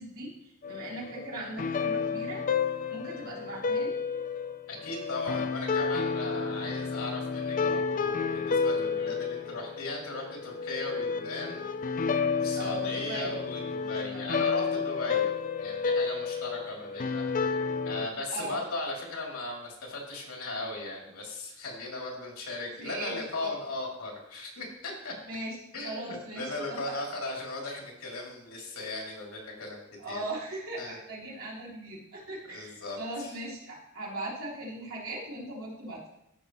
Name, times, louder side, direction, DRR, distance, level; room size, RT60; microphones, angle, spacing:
voice 1, 0.0-2.4 2.9-4.0 12.5-13.4 14.1-14.5 18.3-18.6 22.8-23.1 23.4-23.5 25.3-25.6 25.8-27.0 30.0-36.1, right 2 dB, 70° right, -6 dB, 3.5 m, -39 dB
sound 1, 0.6-18.1, left 5 dB, 40° left, 0.5 m, -31 dB
voice 2, 4.7-11.7 12.3-15.3 15.6-17.5 17.8-25.1 25.7-29.8 30.1-30.2 30.8-31.0 32.5-33.4, left 2 dB, 80° left, -1 dB, 2.8 m, -37 dB
14.0 x 6.2 x 3.1 m, 0.83 s
head